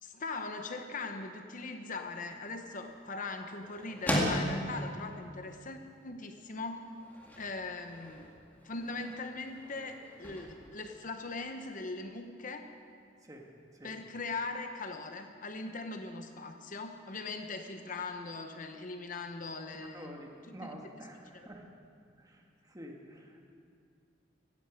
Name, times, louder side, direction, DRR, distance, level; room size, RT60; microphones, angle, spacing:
voice 1, 0.0-6.9 7.4-8.4 8.6-12.7 13.8-20.8 21.3-21.5, left 3 dB, 45° left, 6 dB, 0.9 m, -40 dB
sound 1, 2.0-11.8, equal, 10° left, 2.2 m, -39 dB
voice 2, 19.7-21.7 22.2-22.4 22.7-23.5, right 1 dB, 20° right, 1 dB, 1.7 m, -48 dB
17.5 x 14.5 x 5.1 m, 2.3 s
head